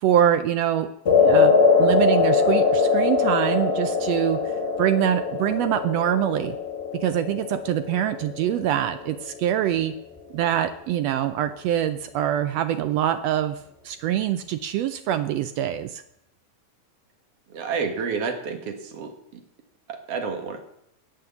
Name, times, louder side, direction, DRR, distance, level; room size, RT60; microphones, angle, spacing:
voice 1, 0.0-0.9 1.2-4.4 4.8-6.6 6.9-9.9 10.3-13.6 13.8-16.0, right 11 dB, 80° right, 11 dB, 1.5 m, -24 dB
sound 1, 1.0-9.4, left 5 dB, 25° left, 2.2 m, -22 dB
voice 2, 17.5-19.4 19.9-20.6, right 5 dB, 55° right, 5 dB, 2.4 m, -30 dB
18.0 x 6.5 x 7.0 m, 0.76 s
omnidirectional pair, 3.6 m